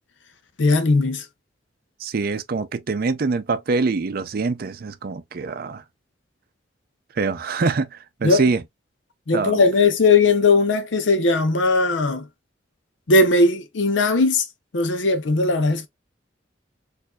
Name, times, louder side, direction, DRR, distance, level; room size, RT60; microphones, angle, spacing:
voice 1, 0.6-1.2 8.2-8.4 9.3-12.3 13.1-14.4 14.7-15.9, left 3 dB, 75° left, 0.7 m, -18 dB
voice 2, 2.0-5.8 7.1-8.6 9.3-9.6, right 4 dB, 50° right, 0.4 m, -24 dB
4.4 x 2.6 x 2.3 m
head